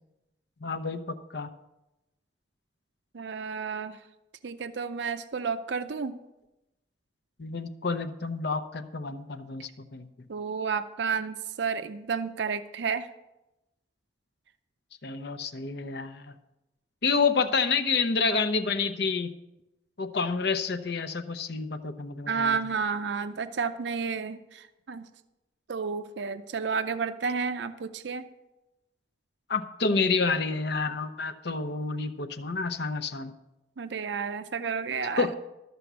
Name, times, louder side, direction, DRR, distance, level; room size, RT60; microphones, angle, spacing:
voice 1, 0.6-1.5 7.4-10.1 15.0-16.3 17.0-19.3 20.0-22.6 29.5-33.3 35.2-35.3, left 4 dB, 65° left, 10 dB, 0.8 m, -29 dB
voice 2, 3.1-4.0 4.4-6.2 10.3-13.1 22.3-25.1 25.7-28.3 33.8-35.3, right 5 dB, 70° right, 11 dB, 0.6 m, -31 dB
13.0 x 6.9 x 6.1 m, 0.95 s
head